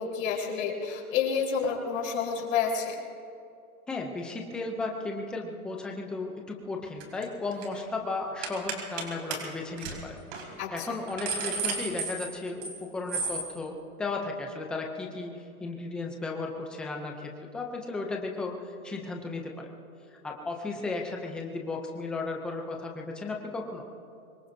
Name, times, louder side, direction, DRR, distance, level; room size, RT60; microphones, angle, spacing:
voice 1, 0.0-3.0 10.6-10.9, left 6 dB, 60° left, -1 dB, 4.3 m, -29 dB
voice 2, 3.9-19.7 20.2-23.9, left 3 dB, ahead, 1 dB, 0.4 m, -35 dB
sound 1, 7.0-7.2 7.5-7.8 8.4-9.0 9.3-9.4 9.8-9.9 10.3-10.4 10.9-12.8 13.1-13.5, right 4 dB, 45° right, 3.6 m, -32 dB
25.0 x 22.0 x 2.7 m, 2.6 s
hypercardioid pair, 145°, 44 cm